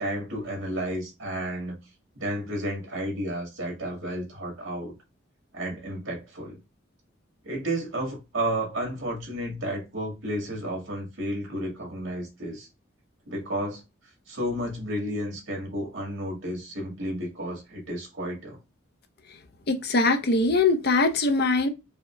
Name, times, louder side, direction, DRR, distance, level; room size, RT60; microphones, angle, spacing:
voice 1, 0.0-1.7 2.2-4.9 5.5-6.5 7.4-12.7 13.3-13.8 14.3-18.6, right 1 dB, 75° right, 1.9 m, -32 dB
voice 2, 19.7-21.7, left 3 dB, 55° left, 0.6 m, -22 dB
4.8 x 2.2 x 3.0 m
head